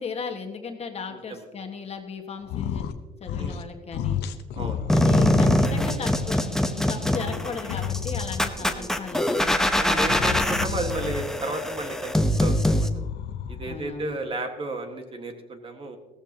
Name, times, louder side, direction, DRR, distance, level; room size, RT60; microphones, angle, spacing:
voice 1, 0.0-2.9 3.2-4.2 4.9-10.6 13.7-14.2, left 5 dB, 40° left, 5 dB, 1.6 m, -36 dB
voice 2, 1.1-1.5 3.4-3.6 4.5-4.8 8.6-9.0 9.8-12.9 13.5-16.0, right 2 dB, 30° right, 5 dB, 1.6 m, -33 dB
sound 1, 2.4-3.0 3.2-3.7 3.9-6.3 6.7-8.6 10.0-11.4 12.8-13.9, left 9 dB, 80° left, 0.9 m, -32 dB
sound 2, 4.9-12.9, left 1 dB, 5° left, 0.9 m, -23 dB
16.0 x 14.5 x 2.9 m, 1.2 s
cardioid pair, 110°, 17 cm